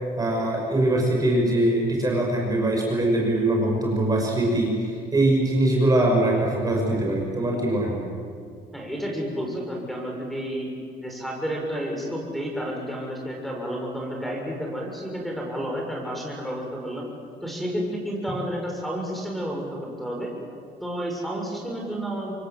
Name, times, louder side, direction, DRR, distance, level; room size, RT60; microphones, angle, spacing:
voice 1, 0.2-8.0, right 1 dB, 20° right, -1 dB, 6.0 m, -22 dB
voice 2, 8.7-10.7 11.0-17.1 17.4-20.3 20.8-22.3, equal, ahead, 0 dB, 6.6 m, -31 dB
26.5 x 23.0 x 7.7 m, 2.2 s
cardioid pair, 110°, 17 cm